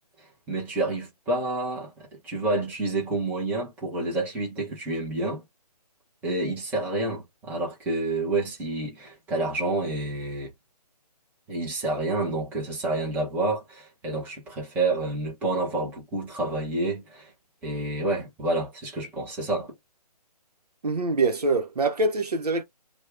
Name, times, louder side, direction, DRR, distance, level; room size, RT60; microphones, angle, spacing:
voice 1, 0.2-5.4 6.2-10.5 11.5-17.3 17.6-19.7, right 2 dB, 10° right, 0.9 m, -29 dB
voice 2, 20.8-22.6, right 3 dB, 70° right, 0.9 m, -24 dB
2.8 x 2.3 x 3.3 m
figure-of-eight pair, 150°, 21 cm